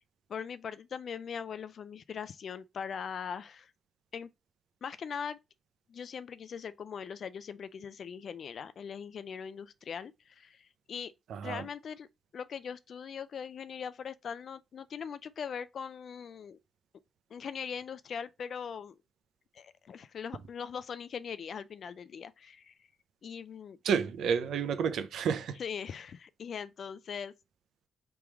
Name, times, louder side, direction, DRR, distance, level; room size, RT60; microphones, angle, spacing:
voice 1, 0.3-3.7 4.1-4.3 4.8-5.4 5.9-11.1 11.4-12.1 12.3-16.6 17.3-18.9 19.5-22.9 23.2-23.8 25.6-27.3, left 7 dB, 60° left, 0.3 m, -41 dB
voice 2, 11.3-11.7 23.8-25.6, right 7 dB, 85° right, 0.5 m, -30 dB
3.5 x 3.0 x 4.6 m
cardioid pair, 100°, 0 cm